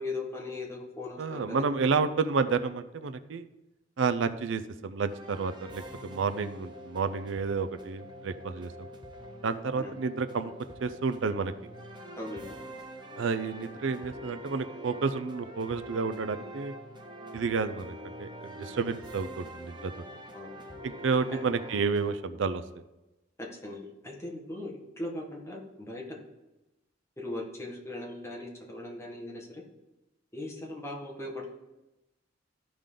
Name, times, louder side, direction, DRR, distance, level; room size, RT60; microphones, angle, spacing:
voice 1, 0.0-1.7 9.8-9.9 12.1-12.5 20.3-20.7 21.3-21.4 23.4-26.2 27.2-29.6 30.3-31.5, left 2 dB, 15° left, -1 dB, 1.6 m, -39 dB
voice 2, 1.2-3.5 4.0-8.7 9.4-10.5 10.8-11.5 13.2-16.7 17.3-19.9 20.8-22.6, right 5 dB, 75° right, 11 dB, 0.5 m, -30 dB
sound 1, 5.1-22.2, equal, 25° right, 1.0 m, -45 dB
13.5 x 5.2 x 3.8 m, 1.0 s
head